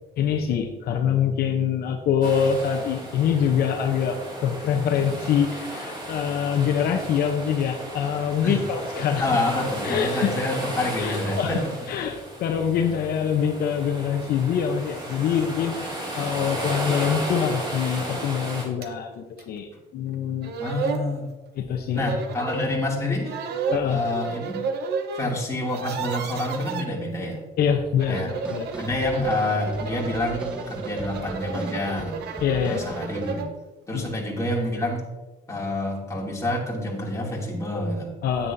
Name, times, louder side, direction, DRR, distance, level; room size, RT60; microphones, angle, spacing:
voice 1, 0.2-9.3 9.8-10.3 11.0-20.5 21.6-22.0 23.7-24.0 27.6-28.7 32.4-32.8 33.9-34.0 38.2-38.5, left 7 dB, 65° left, 3 dB, 0.9 m, -25 dB
sound 1, 2.2-18.7, right 1 dB, 25° right, 2.6 m, -34 dB
voice 2, 9.2-11.6 20.6-21.3 21.9-23.4 23.8-24.6 25.1-27.4 28.1-28.3 28.8-32.2 32.6-33.5 33.9-35.1 35.5-38.1, left 1 dB, 20° left, -3 dB, 2.7 m, -27 dB
sound 2, 18.8-18.9 19.4-19.5 20.1-20.2 20.4-21.1 22.0-22.7 23.2-25.3 25.6-26.9 27.9-33.6, right 4 dB, 75° right, 0.9 m, -32 dB
sound 3, 28.1-33.4, right 1 dB, 5° right, 0.8 m, -41 dB
9.6 x 9.2 x 2.7 m, 1.1 s
cardioid pair, 110°, 17 cm